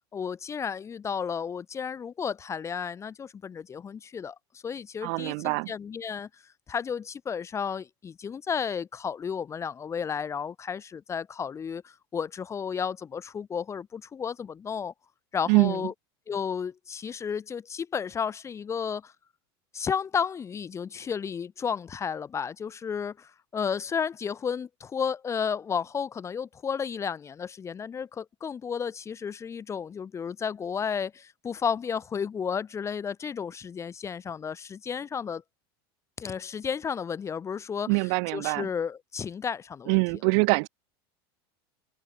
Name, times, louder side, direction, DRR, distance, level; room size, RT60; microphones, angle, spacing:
voice 1, 0.1-6.3 6.7-14.9 15.3-15.9 16.3-19.1 19.7-35.4 36.2-38.0 38.3-40.0, left 6 dB, 20° left, 0.8 m, -32 dB
voice 2, 5.0-5.7 15.5-15.8 37.9-38.7 39.9-40.7, right 40 dB or more, 65° right, 1.3 m, -24 dB
supercardioid pair, 120°, 13 cm